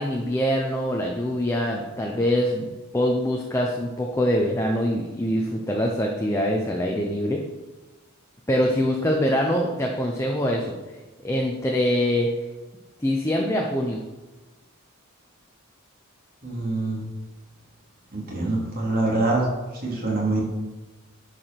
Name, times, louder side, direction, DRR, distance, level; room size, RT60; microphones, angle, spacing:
voice 1, 0.0-2.7 2.9-7.4 8.5-10.7 11.2-12.3 13.0-14.0, equal, 10° left, -1 dB, 0.8 m, -24 dB
voice 2, 16.4-17.0 18.1-19.4 19.8-20.4, right 2 dB, 40° right, -3 dB, 2.8 m, -25 dB
10.5 x 5.0 x 5.9 m, 1.2 s
head